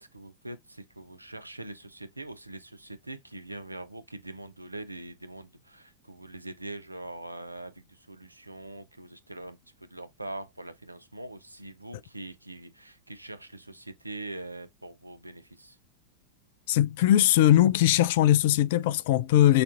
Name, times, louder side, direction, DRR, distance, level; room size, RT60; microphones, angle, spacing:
voice 1, 0.0-15.8, right 2 dB, 85° right, 0.5 m, -43 dB
voice 2, 16.7-19.6, left 13 dB, 50° left, 0.3 m, -20 dB
6.6 x 2.5 x 2.5 m
figure-of-eight pair, 90°, 0 cm